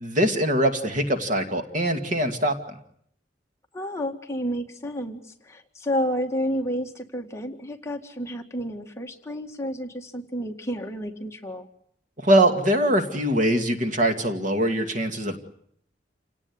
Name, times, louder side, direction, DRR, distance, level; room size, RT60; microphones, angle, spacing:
voice 1, 0.0-2.5 12.2-15.4, right 1 dB, 45° right, 6 dB, 2.3 m, -22 dB
voice 2, 3.7-11.7, equal, 15° left, 2 dB, 2.0 m, -30 dB
28.5 x 18.0 x 9.6 m, 0.69 s
head